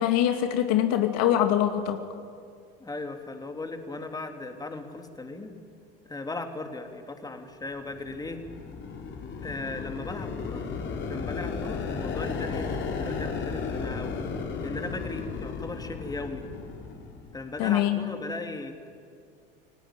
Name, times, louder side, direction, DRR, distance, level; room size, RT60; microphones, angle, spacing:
voice 1, 0.0-2.0 17.6-18.0, left 11 dB, 60° left, 6 dB, 2.4 m, -23 dB
voice 2, 2.8-5.6 6.1-8.4 9.4-10.6 11.1-14.2 14.6-16.5 17.3-18.9, left 3 dB, 15° left, 5 dB, 3.1 m, -37 dB
sound 1, 7.8-17.6, left 5 dB, 40° left, 4.5 m, -34 dB
29.5 x 18.5 x 9.1 m, 2.2 s
hypercardioid pair, 90°, 29 cm